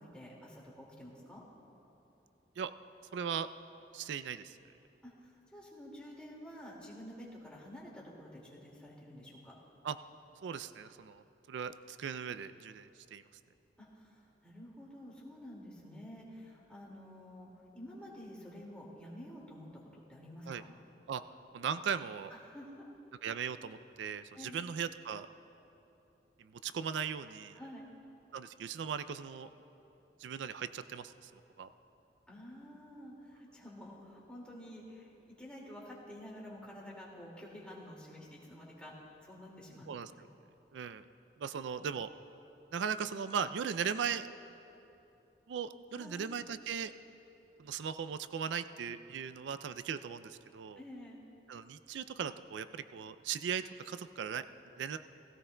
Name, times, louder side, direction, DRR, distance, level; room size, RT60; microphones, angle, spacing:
voice 1, 0.0-1.4 5.0-9.5 13.8-20.7 22.3-22.9 24.3-24.6 27.5-27.8 32.3-38.9 39.2-39.9 41.5-41.6 45.9-46.2 50.8-51.2, equal, 5° left, -4 dB, 2.1 m, -50 dB
voice 2, 3.1-3.5 3.9-4.6 9.8-10.0 10.4-11.2 11.5-13.2 20.5-20.6 21.1-21.2 21.5-22.3 23.2-25.3 26.4-27.6 28.3-29.5 30.2-31.3 31.6-31.7 39.9-40.1 40.7-41.0 41.4-42.1 42.7-44.3 45.5-46.9 47.6-50.8 51.5-54.4 54.8-55.0, right 7 dB, 85° right, 12 dB, 0.3 m, -38 dB
17.0 x 16.5 x 2.2 m, 2.9 s
head